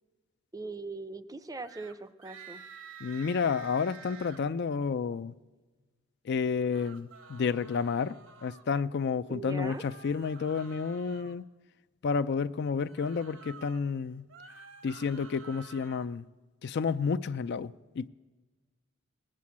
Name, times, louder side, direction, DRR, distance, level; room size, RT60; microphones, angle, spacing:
voice 1, 0.5-2.6 9.3-9.8, right 3 dB, 15° right, 0.5 m, -40 dB
sound 1, 1.6-1.9 2.2-4.4 6.5-8.6 9.6-11.4 12.8-13.8 14.2-16.1, right 5 dB, 65° right, 1.0 m, -50 dB
voice 2, 3.0-5.3 6.2-8.2 8.4-11.4 12.0-14.3 14.8-16.3 16.6-18.1, left 5 dB, 50° left, 0.4 m, -30 dB
19.5 x 7.6 x 8.5 m
head